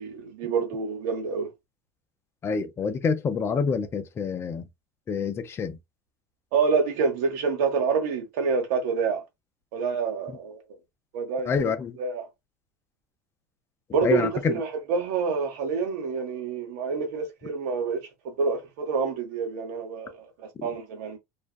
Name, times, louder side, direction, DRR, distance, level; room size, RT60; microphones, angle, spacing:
voice 1, 0.0-1.5 6.5-9.2 9.7-10.6 11.1-11.7 12.0-12.2 13.9-20.3 20.6-21.2, right 5 dB, 80° right, 1.0 m, -27 dB
voice 2, 2.4-4.7 5.1-5.8 10.3-10.4 11.5-12.0 14.0-14.5 20.6-20.7, left 5 dB, 30° left, 0.5 m, -27 dB
2.4 x 2.3 x 2.3 m
supercardioid pair, 90°, 8 cm